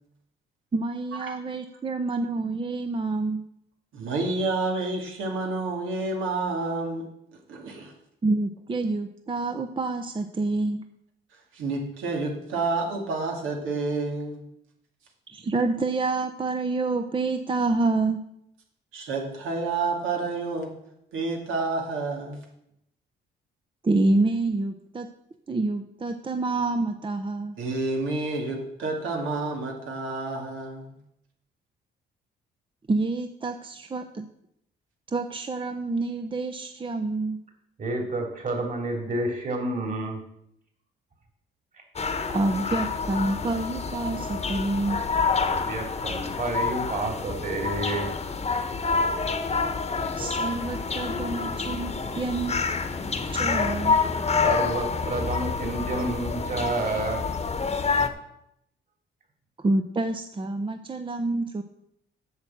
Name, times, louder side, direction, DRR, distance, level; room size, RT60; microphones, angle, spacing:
voice 1, 0.7-3.4 8.2-10.8 15.3-18.2 23.8-25.1 25.5-27.6 32.9-34.3 35.1-37.4 42.3-45.0 50.2-52.5 53.3-54.0 59.6-61.6, right 3 dB, 25° right, 7 dB, 0.7 m, -27 dB
voice 2, 3.9-7.1 7.3-7.9 11.3-14.5 18.9-20.7 21.1-22.4 27.6-31.0, right 3 dB, 85° right, 0 dB, 2.5 m, -29 dB
voice 3, 37.8-40.2 45.4-48.1 54.4-57.2, right 2 dB, 40° right, 1 dB, 3.4 m, -29 dB
sound 1, 42.0-58.1, left 4 dB, 35° left, 1.2 m, -28 dB
8.2 x 6.4 x 7.6 m, 0.76 s
cardioid pair, 90°, 20 cm